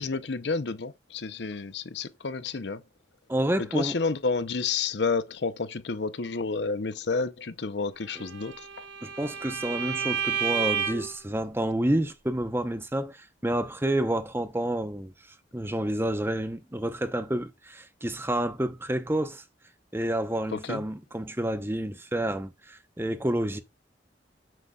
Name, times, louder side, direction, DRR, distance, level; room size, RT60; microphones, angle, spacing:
voice 1, 0.0-2.8 3.7-8.7 20.5-20.8, left 4 dB, 70° left, 0.7 m, -30 dB
voice 2, 3.3-4.0 8.1-8.2 9.0-15.1 15.5-19.4 19.9-23.6, right 1 dB, 15° right, 0.8 m, -29 dB
Bowed string instrument, 8.2-11.2, right 7 dB, 85° right, 1.7 m, -31 dB
7.6 x 7.0 x 2.3 m
head